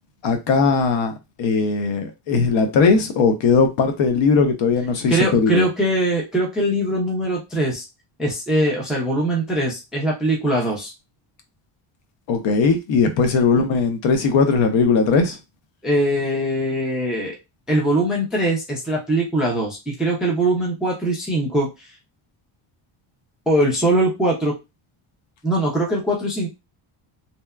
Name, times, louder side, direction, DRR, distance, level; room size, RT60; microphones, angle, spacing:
voice 1, 0.2-5.7 12.3-15.4, left 4 dB, 65° left, 0.7 m, -19 dB
voice 2, 5.1-7.9 8.2-10.9 15.8-17.4 17.7-21.9 23.5-24.5 25.4-26.5, right 1 dB, ahead, 0.4 m, -21 dB
2.8 x 2.2 x 2.2 m
cardioid pair, 170°, 49 cm